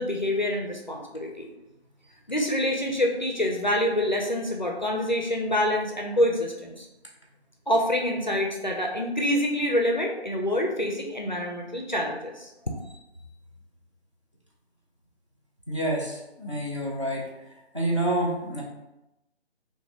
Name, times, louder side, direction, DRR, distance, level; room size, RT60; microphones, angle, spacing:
voice 1, 0.0-1.5 2.3-6.9 7.7-12.5, left 1 dB, 45° left, 1 dB, 0.4 m, -26 dB
voice 2, 15.7-17.5 17.7-18.6, right 1 dB, 30° right, -5 dB, 0.6 m, -28 dB
3.7 x 2.5 x 2.9 m, 0.95 s
figure-of-eight pair, 155°, 33 cm